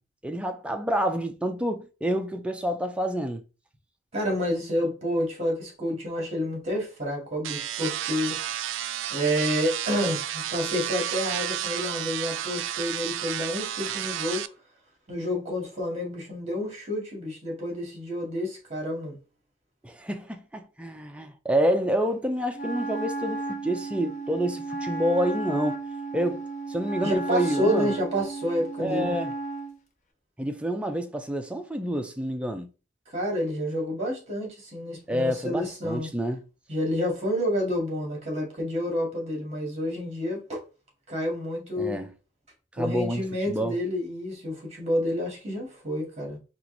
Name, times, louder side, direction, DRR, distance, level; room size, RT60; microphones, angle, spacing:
voice 1, 0.2-3.4 19.8-25.8 26.1-26.4 26.7-27.9 28.8-29.3 30.4-32.7 35.1-36.4 41.8-42.1 42.8-43.8, equal, 5° right, 0.5 m, -28 dB
voice 2, 4.1-8.4 9.1-14.4 15.1-19.2 27.0-29.1 33.1-36.1 36.7-40.6 41.1-42.0 42.8-46.4, equal, 35° right, 2.1 m, -29 dB
sound 1, 7.4-14.5, right 11 dB, 70° right, 0.3 m, -31 dB
Wind instrument woodwind instrument, 22.5-29.8, right 2 dB, 40° left, 0.8 m, -33 dB
4.5 x 2.5 x 3.9 m
head